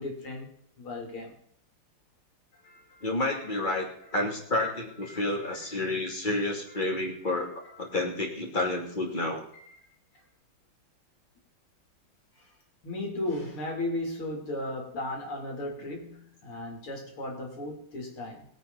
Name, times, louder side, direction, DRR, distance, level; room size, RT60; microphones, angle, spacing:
voice 1, 0.0-1.4 2.6-3.1 3.3-3.4 4.5-4.7 5.0-5.2 5.5-5.8 6.7-6.8 7.3-7.4 8.6-8.7 9.5-9.6 12.8-18.5, left 2 dB, 70° left, 4.1 m, -36 dB
voice 2, 3.0-7.5 7.8-9.4, left 2 dB, 20° left, 2.9 m, -30 dB
22.0 x 8.6 x 4.1 m
omnidirectional pair, 2.4 m